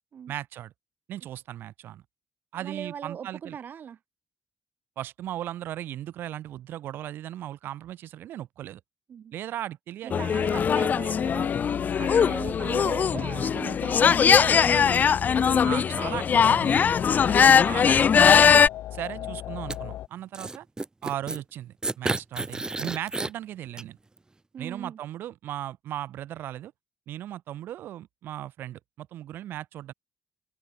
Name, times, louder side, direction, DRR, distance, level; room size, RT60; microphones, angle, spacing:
voice 1, 0.3-0.7 1.1-2.0 2.5-3.6 5.0-8.8 9.3-10.6 12.0-12.1 15.6-16.8 17.2-18.6 18.9-20.7 21.0-24.0 24.6-26.7 27.1-29.9, right 12 dB, 85° right, 4.0 m, -37 dB
voice 2, 2.6-4.0 9.1-9.3 10.0-15.2 19.2-19.4 24.5-25.0, right 8 dB, 60° right, 2.6 m, -40 dB
sound 1, 10.1-18.7, left 7 dB, 55° left, 1.3 m, -20 dB
sound 2, 10.3-20.1, left 13 dB, 90° left, 7.6 m, -38 dB
sound 3, 19.7-19.8 20.3-21.4 21.8-23.3 23.8-23.9, right 2 dB, 20° right, 1.0 m, -31 dB
open air
cardioid pair, 80°, 4 cm